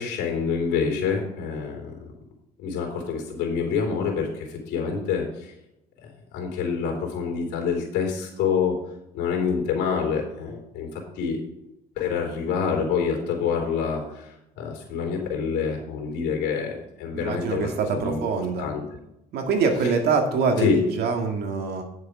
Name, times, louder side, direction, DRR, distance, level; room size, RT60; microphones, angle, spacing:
voice 1, 0.0-1.9 2.6-5.5 6.3-8.8 9.1-11.4 12.0-14.3 14.6-18.2 18.6-18.8 20.6-20.8, left 6 dB, 90° left, 0 dB, 3.5 m, -27 dB
voice 2, 17.1-18.6 19.3-21.8, right 5 dB, 70° right, 4 dB, 2.1 m, -24 dB
10.0 x 6.9 x 5.0 m, 0.86 s
cardioid pair, 110°, 17 cm